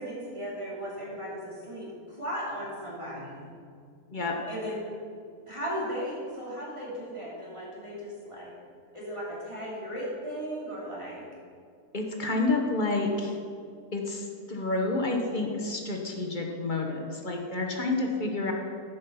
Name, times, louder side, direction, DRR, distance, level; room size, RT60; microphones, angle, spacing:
voice 1, 0.0-1.9 2.2-3.5 4.5-4.8 5.5-8.5 8.9-11.2, equal, 20° right, -7 dB, 2.9 m, -36 dB
voice 2, 4.1-4.4 11.9-13.4 13.9-18.5, left 2 dB, 35° left, 2 dB, 1.1 m, -29 dB
10.5 x 5.6 x 7.1 m, 2.2 s
omnidirectional pair, 1.6 m